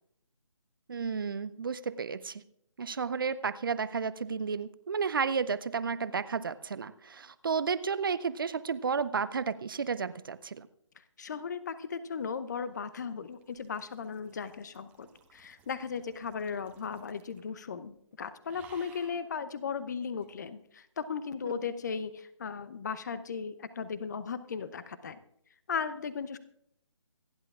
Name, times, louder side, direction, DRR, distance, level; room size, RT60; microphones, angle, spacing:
voice 1, 0.9-2.4 2.8-10.7, right 5 dB, 45° right, 15 dB, 0.6 m, -32 dB
voice 2, 11.2-25.2 25.7-26.4, left 6 dB, 35° left, 14 dB, 0.8 m, -36 dB
sound 1, 11.9-17.6 17.9-18.1 18.5-19.3 20.2-20.4, right 6 dB, 10° right, 0.9 m, -59 dB
27.0 x 11.0 x 2.4 m, 0.71 s
figure-of-eight pair, 155°, 16 cm